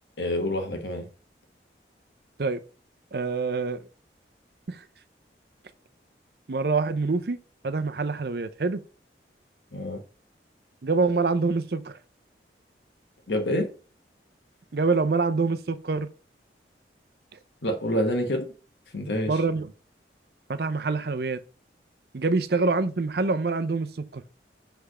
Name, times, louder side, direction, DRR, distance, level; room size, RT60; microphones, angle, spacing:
voice 1, 0.2-1.1 9.7-10.0 13.3-13.7 17.6-18.5 18.9-19.4, left 1 dB, 75° left, 1.1 m, -27 dB
voice 2, 3.1-3.9 4.7-4.8 6.5-7.4 7.6-8.8 10.8-12.0 14.7-16.1 19.3-19.7 20.5-21.4 22.1-24.2, right 3 dB, 60° right, 0.5 m, -25 dB
6.5 x 3.4 x 4.9 m
head